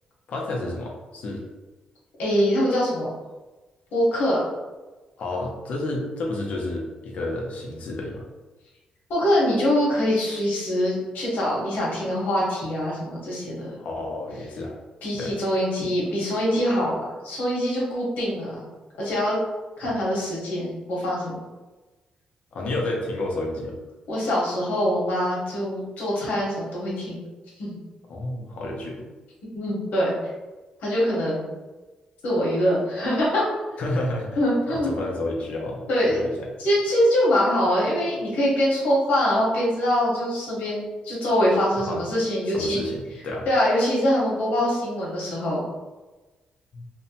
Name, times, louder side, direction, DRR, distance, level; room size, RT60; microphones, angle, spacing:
voice 1, 0.3-1.4 5.2-8.2 13.8-14.7 15.2-15.4 19.8-19.9 22.5-23.8 28.1-29.0 33.8-34.4 34.7-36.5 41.9-42.0 42.5-43.5 46.7-46.9, left 2 dB, 60° left, -1 dB, 0.6 m, -30 dB
voice 2, 2.2-3.1 3.9-4.4 9.1-13.7 15.0-18.5 19.0-19.4 19.8-21.3 24.1-27.2 27.6-27.8 29.5-30.1 30.8-31.5 32.2-33.5 34.4-34.9 35.9-36.2 36.6-42.8 43.5-45.6, equal, 85° left, -5 dB, 1.0 m, -23 dB
2.7 x 2.1 x 2.7 m, 1.2 s
cardioid pair, 145°, 3 cm